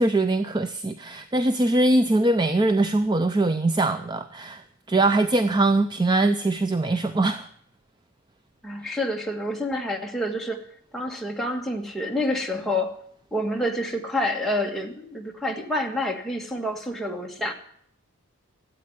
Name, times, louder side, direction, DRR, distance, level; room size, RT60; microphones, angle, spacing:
voice 1, 0.0-4.6 4.9-7.5 8.8-9.0, right 2 dB, 20° right, 10 dB, 0.5 m, -22 dB
voice 2, 8.6-10.6 10.9-13.0 13.3-17.5, left 1 dB, ahead, 0 dB, 1.6 m, -28 dB
13.0 x 8.6 x 9.9 m, 0.65 s
head